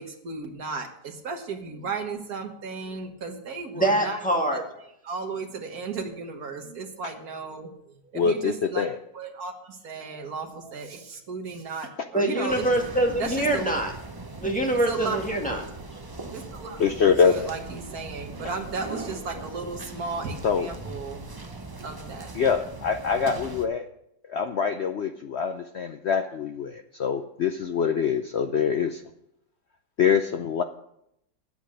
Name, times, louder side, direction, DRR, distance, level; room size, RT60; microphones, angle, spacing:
voice 1, 0.0-4.2 5.0-8.9 9.1-12.7 13.2-13.7 14.9-15.6 16.0-22.3, right 4 dB, 60° right, 4 dB, 1.9 m, -35 dB
voice 2, 3.7-4.6 12.1-13.9 14.4-15.6, right 1 dB, 5° left, 1 dB, 1.7 m, -24 dB
voice 3, 8.1-9.0 16.8-17.5 20.4-20.7 22.3-23.9 24.3-29.0 30.0-30.6, left 6 dB, 70° left, 7 dB, 0.6 m, -24 dB
sound 1, 12.5-23.7, right 3 dB, 35° right, 0.3 m, -40 dB
10.5 x 8.4 x 6.3 m, 0.76 s
omnidirectional pair, 1.8 m